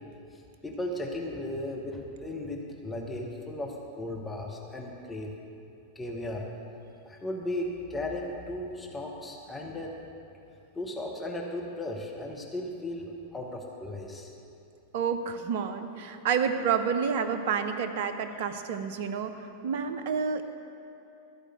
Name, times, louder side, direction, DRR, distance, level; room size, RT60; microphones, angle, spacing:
voice 1, 0.3-5.3 5.9-6.5 7.0-9.9 10.7-14.3, left 1 dB, 10° left, -1 dB, 1.2 m, -36 dB
voice 2, 14.9-19.3 19.6-20.4, right 6 dB, 50° right, 9 dB, 0.6 m, -29 dB
13.0 x 5.0 x 7.6 m, 2.8 s
figure-of-eight pair, 90°, 0 cm